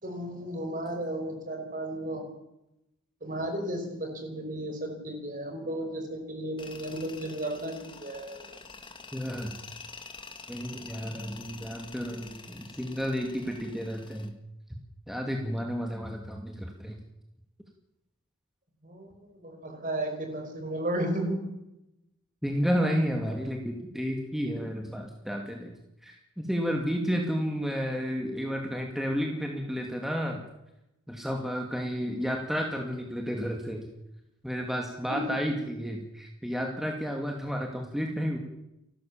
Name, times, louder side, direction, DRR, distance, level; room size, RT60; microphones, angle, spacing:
voice 1, 0.0-2.3 3.2-8.5 11.0-11.4 18.8-21.5 35.1-35.3, right 1 dB, 35° right, 5 dB, 5.0 m, -34 dB
Tools, 6.6-14.3, left 4 dB, 20° left, 1.9 m, -47 dB
voice 2, 9.1-9.5 10.5-14.3 15.1-16.9 22.4-25.7 26.0-30.4 31.1-33.9 34.4-38.4, equal, ahead, 1 dB, 2.2 m, -31 dB
29.5 x 13.0 x 7.3 m, 0.89 s
head